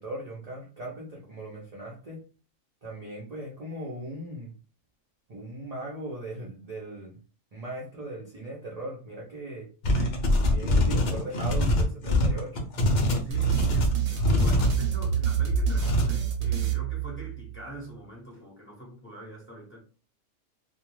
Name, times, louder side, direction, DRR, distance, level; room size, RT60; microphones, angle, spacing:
voice 1, 0.0-2.3 2.8-4.5 5.3-7.2 7.5-9.7 10.5-12.7, right 1 dB, 45° right, 0.5 m, -38 dB
sound 1, 9.8-14.7 15.8-16.1, left 1 dB, 55° left, 0.5 m, -24 dB
voice 2, 13.2-19.8, right 1 dB, 10° left, 0.8 m, -43 dB
sound 2, 13.3-17.6, right 6 dB, 90° right, 1.1 m, -27 dB
2.3 x 2.2 x 3.0 m
omnidirectional pair, 1.3 m